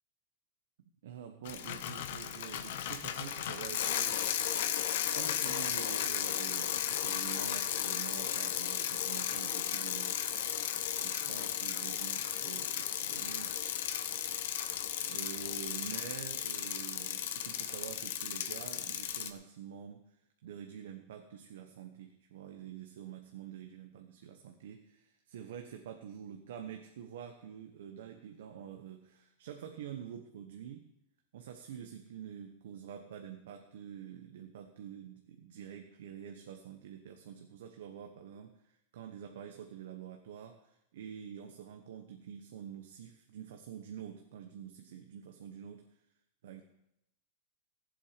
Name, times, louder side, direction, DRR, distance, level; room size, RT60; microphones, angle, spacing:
voice 1, 1.0-4.2 5.1-10.3 10.9-13.7 15.0-20.1 20.4-30.9 31.3-45.8 46.4-46.6, right 8 dB, 75° right, 4 dB, 1.1 m, -47 dB
Bicycle, 1.4-19.3, left 10 dB, 70° left, 1.0 m, -35 dB
14.5 x 7.8 x 5.2 m, 0.83 s
supercardioid pair, 150°, 0 cm